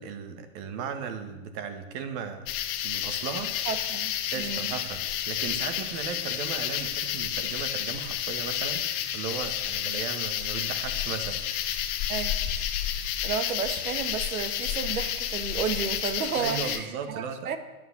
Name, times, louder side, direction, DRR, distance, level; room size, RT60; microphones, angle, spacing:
voice 1, 0.0-2.5 2.8-3.5 4.3-11.4 16.4-17.6, right 6 dB, 40° right, 8 dB, 1.7 m, -36 dB
sound 1, 2.5-16.8, left 11 dB, 35° left, 1.1 m, -30 dB
voice 2, 3.6-4.7 12.1-12.4 13.2-17.6, right 7 dB, 75° right, 10 dB, 1.6 m, -32 dB
11.0 x 9.4 x 7.4 m, 1.1 s
hypercardioid pair, 135°, 43 cm